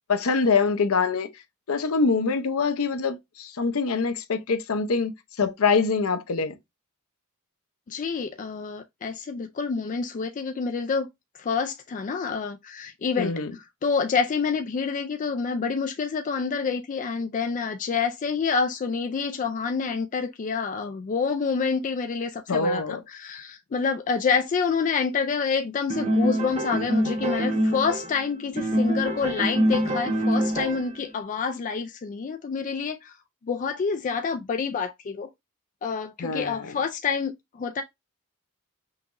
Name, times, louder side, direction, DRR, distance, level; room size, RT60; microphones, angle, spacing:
voice 1, 0.1-1.3 1.7-5.1 5.4-6.5 13.2-13.5 22.5-23.0 36.2-36.7, left 4 dB, 70° left, 0.6 m, -24 dB
voice 2, 7.9-11.1 11.4-13.3 13.8-33.1 33.4-35.3 35.8-37.8, left 5 dB, 35° left, 0.3 m, -27 dB
sound 1, 25.9-28.2 28.6-31.0, equal, 30° right, 0.9 m, -25 dB
5.7 x 2.9 x 2.5 m
head